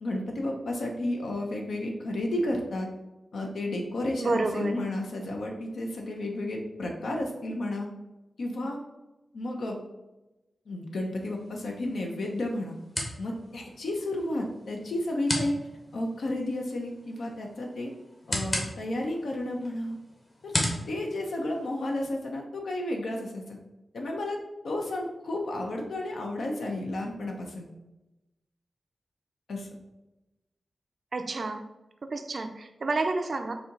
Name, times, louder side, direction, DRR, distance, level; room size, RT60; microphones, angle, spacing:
voice 1, 0.0-2.9 3.3-7.9 8.4-8.8 9.3-9.8 10.7-12.8 13.2-15.6 15.9-17.9 18.3-20.0 20.4-20.5 20.9-23.6 23.9-24.4 24.6-27.7 29.5-29.7, left 1 dB, 85° left, 1 dB, 0.6 m, -32 dB
voice 2, 4.2-4.8 31.1-31.6 32.1-33.5, right 3 dB, 55° right, 6 dB, 0.3 m, -29 dB
sound 1, 11.2-22.1, left 1 dB, 35° left, 1.0 m, -37 dB
4.3 x 2.7 x 3.8 m, 1.0 s
wide cardioid pair, 85°, 0 cm